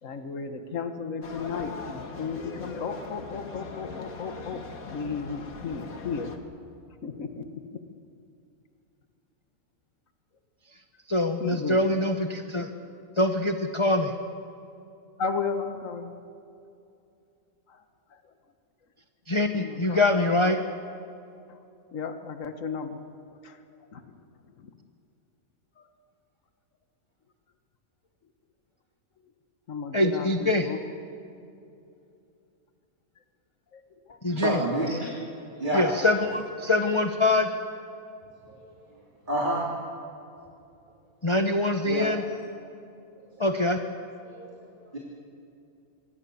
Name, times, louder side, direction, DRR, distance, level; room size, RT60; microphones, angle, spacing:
voice 1, 0.0-4.6 4.9-6.3 7.0-7.8 11.4-11.8 15.2-16.1 17.7-17.8 18.1-18.2 19.5-20.0 21.5-21.6 21.9-23.0 23.3-23.6 23.9-24.1 24.6-24.7 25.8-25.9 29.7-30.8 33.7-34.2, left 5 dB, 65° left, 7 dB, 1.8 m, -34 dB
sound 1, 1.2-6.4, left 4 dB, 85° left, 2.1 m, -40 dB
voice 2, 11.1-12.7 13.2-14.1 19.3-20.6 29.9-30.7 34.2-34.6 35.7-37.5 41.2-42.2 43.4-43.8, left 2 dB, 25° left, 6 dB, 1.0 m, -24 dB
voice 3, 34.3-35.1 35.5-35.8 38.5-38.7 39.3-39.6 41.8-42.1 44.2-44.5 44.9-45.0, right 1 dB, 35° right, -3 dB, 3.3 m, -28 dB
26.0 x 24.5 x 7.1 m, 2.7 s
omnidirectional pair, 1.5 m